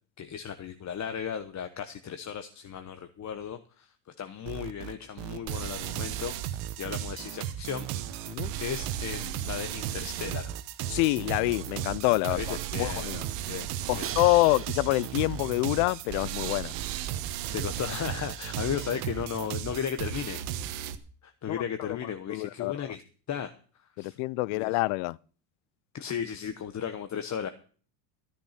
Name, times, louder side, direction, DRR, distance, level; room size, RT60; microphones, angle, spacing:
voice 1, 0.2-10.5 12.3-13.1 13.4-14.1 17.3-20.9 21.2-23.0 23.3-23.5 24.0-24.2 24.5-24.8 25.9-27.5, left 8 dB, 35° left, 1.2 m, -36 dB
sound 1, 4.5-19.8, right 12 dB, 65° right, 1.2 m, -40 dB
sound 2, 5.5-21.0, right 11 dB, 85° right, 1.4 m, -35 dB
voice 2, 10.9-13.2 13.9-16.7 21.5-22.9 24.0-25.2, left 21 dB, 75° left, 0.6 m, -27 dB
Crash cymbal, 14.0-16.0, right 10 dB, 30° right, 0.6 m, -42 dB
13.5 x 9.9 x 5.9 m
supercardioid pair, 100°, 48 cm